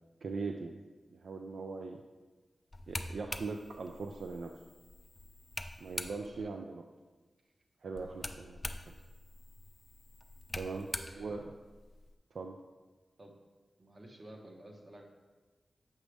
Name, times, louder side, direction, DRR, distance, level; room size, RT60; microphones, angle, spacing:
voice 1, 0.2-0.8 1.2-2.0 2.9-4.6 5.8-6.8 7.8-8.9 10.5-10.9 11.2-11.5 12.3-12.6, right 4 dB, 75° right, 3 dB, 0.3 m, -40 dB
sound 1, 2.7-6.5 7.9-12.1, left 1 dB, 25° left, 0.4 m, -44 dB
voice 2, 10.7-11.4 13.2-13.3 13.8-15.1, right 1 dB, 45° right, 1 dB, 1.0 m, -52 dB
7.2 x 5.1 x 3.4 m, 1.3 s
cardioid pair, 65°, 0 cm